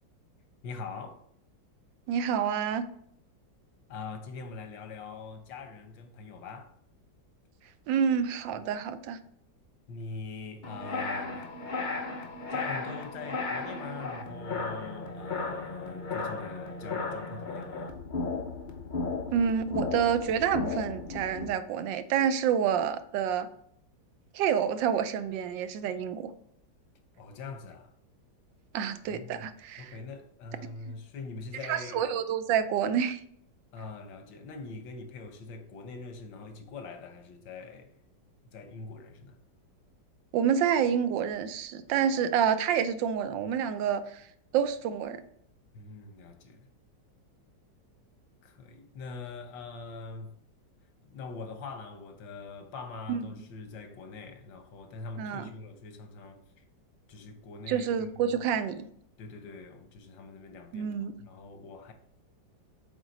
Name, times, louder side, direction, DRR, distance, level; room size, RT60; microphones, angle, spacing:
voice 1, 0.6-1.2 3.9-6.7 9.9-11.4 12.5-18.0 27.2-27.9 29.1-29.5 29.8-32.1 33.7-37.9 38.5-39.4 45.7-46.7 48.4-50.4 51.0-56.6 57.1-58.5 59.2-60.9 61.2-61.9, left 4 dB, 90° left, 1.6 m, -43 dB
voice 2, 2.1-2.9 7.9-9.2 19.3-23.5 24.3-26.3 28.7-29.9 31.7-33.2 40.3-44.3 44.5-45.2 53.1-53.3 55.2-55.5 57.7-58.9 60.7-61.1, right 8 dB, 85° right, 1.3 m, -28 dB
sound 1, 10.6-21.5, left 3 dB, 55° left, 0.5 m, -35 dB
8.0 x 3.7 x 4.0 m
omnidirectional pair, 2.0 m